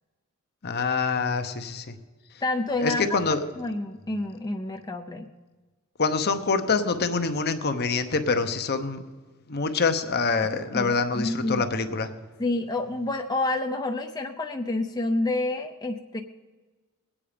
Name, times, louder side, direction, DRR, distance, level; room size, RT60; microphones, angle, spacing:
voice 1, 0.6-1.9 2.8-3.4 6.0-9.0 9.5-12.1, left 4 dB, 50° left, 8 dB, 0.9 m, -25 dB
voice 2, 2.4-3.1 3.6-5.3 10.7-11.7 12.4-16.2, left 2 dB, 20° left, 3 dB, 0.5 m, -28 dB
21.5 x 8.6 x 5.1 m, 1.3 s
head